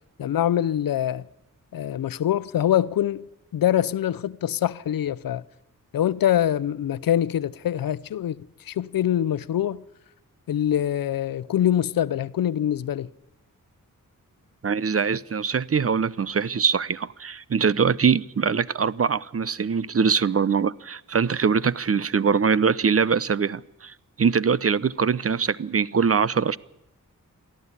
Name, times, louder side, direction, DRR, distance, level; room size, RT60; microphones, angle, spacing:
voice 1, 0.2-1.2 1.7-3.3 3.5-5.4 5.9-8.4 8.7-9.8 10.5-13.1, left 11 dB, 85° left, 0.7 m, -24 dB
voice 2, 14.6-26.6, right 6 dB, 45° right, 0.8 m, -23 dB
22.5 x 14.5 x 9.8 m
cardioid pair, 65°, 33 cm